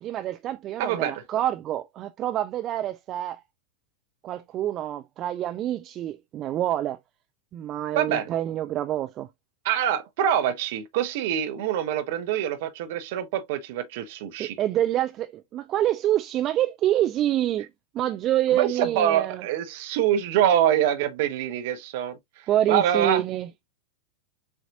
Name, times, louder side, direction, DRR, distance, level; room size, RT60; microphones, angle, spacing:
voice 1, 0.0-3.4 4.2-7.0 7.5-9.3 14.4-17.7 17.9-19.4 22.5-23.5, right 12 dB, 35° right, 0.4 m, -26 dB
voice 2, 0.8-1.1 7.9-8.3 9.6-14.6 18.5-23.2, right 10 dB, 50° right, 0.8 m, -25 dB
6.9 x 2.7 x 2.5 m
figure-of-eight pair, 90°, 0 cm